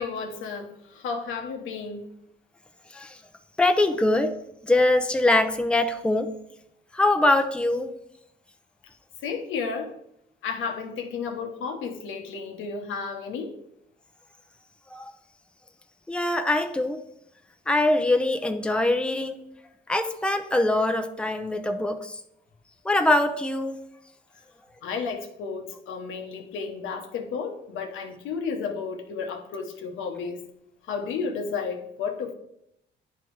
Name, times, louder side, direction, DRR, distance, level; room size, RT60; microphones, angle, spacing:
voice 1, 0.0-2.1 9.2-9.9 10.4-13.5 24.8-30.4 30.9-32.3, left 5 dB, 85° left, 4 dB, 1.0 m, -32 dB
voice 2, 3.6-4.4 4.6-6.3 6.9-7.9 14.9-15.1 16.1-17.0 17.7-19.4 19.9-22.2 22.8-23.8, left 2 dB, 5° left, 7 dB, 0.6 m, -23 dB
9.8 x 3.4 x 4.6 m, 0.78 s
cardioid pair, 90°, 20 cm